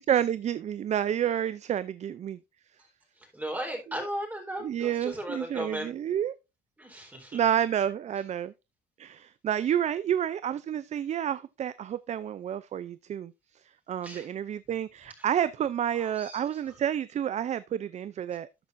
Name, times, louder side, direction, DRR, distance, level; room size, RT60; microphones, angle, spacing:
voice 1, 0.0-2.4 4.6-6.3 7.3-8.5 9.0-13.3 13.9-18.5, right 10 dB, 40° right, 0.5 m, -29 dB
voice 2, 3.2-5.9 6.8-7.4 14.0-14.3 15.2-15.3 15.9-16.6, right 1 dB, 10° right, 4.1 m, -37 dB
13.0 x 8.4 x 2.6 m
cardioid pair, 110°, 17 cm